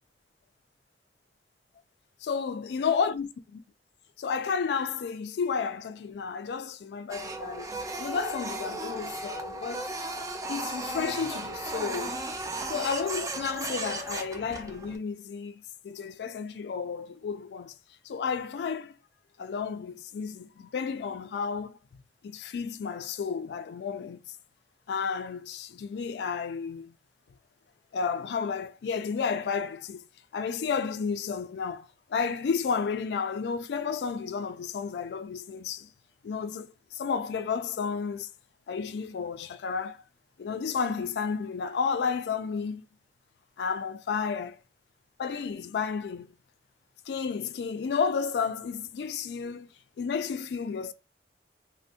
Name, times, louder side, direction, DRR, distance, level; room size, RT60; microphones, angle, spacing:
voice 1, 2.3-3.6 4.2-7.7 8.0-9.9 10.5-12.2 12.7-17.7 18.0-18.9 19.4-21.8 22.2-24.4 24.9-26.9 27.9-30.0 30.3-35.9 36.2-38.3 38.7-40.0 40.4-42.8 43.6-44.6 45.2-46.3 47.1-49.7 50.0-50.9, left 6 dB, 70° left, 0.3 m, -32 dB
Printer, 7.1-15.0, right 2 dB, 20° right, 0.3 m, -35 dB
3.3 x 2.1 x 2.6 m
head